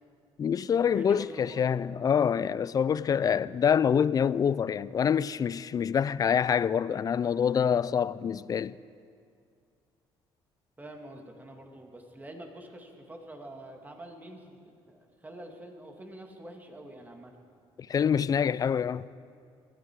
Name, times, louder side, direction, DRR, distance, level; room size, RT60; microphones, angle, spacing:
voice 1, 0.4-8.8 17.9-19.1, left 7 dB, 40° left, 0.4 m, -26 dB
voice 2, 0.9-1.8 10.8-14.6 14.9-17.3, right 1 dB, 15° right, 2.3 m, -46 dB
21.5 x 13.5 x 4.8 m
cardioid pair, 90°, 10 cm